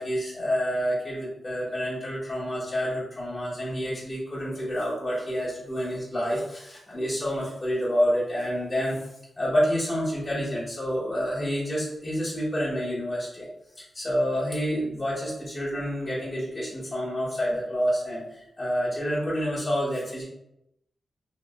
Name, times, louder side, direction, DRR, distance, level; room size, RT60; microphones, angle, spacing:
voice 1, 0.0-8.9 9.4-13.5 13.8-20.2, equal, 15° left, -10 dB, 1.4 m, -28 dB
2.9 x 2.8 x 2.2 m, 0.84 s
wide cardioid pair, 105°, 0 cm